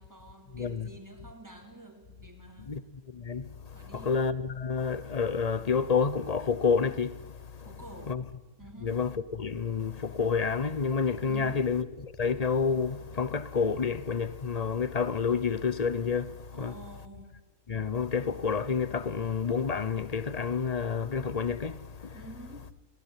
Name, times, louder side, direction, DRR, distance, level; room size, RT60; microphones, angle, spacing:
voice 1, 0.0-2.8 3.7-4.2 7.6-8.2 8.6-9.0 11.3-11.8 16.5-17.4 22.1-22.7, right 2 dB, 15° right, 3.5 m, -48 dB
voice 2, 0.5-0.9 2.7-2.8 3.1-3.5 3.9-7.7 8.1-8.2 8.8-11.8 12.2-16.7 17.7-22.1, left 5 dB, 35° left, 0.8 m, -29 dB
22.5 x 17.0 x 9.7 m
omnidirectional pair, 1.4 m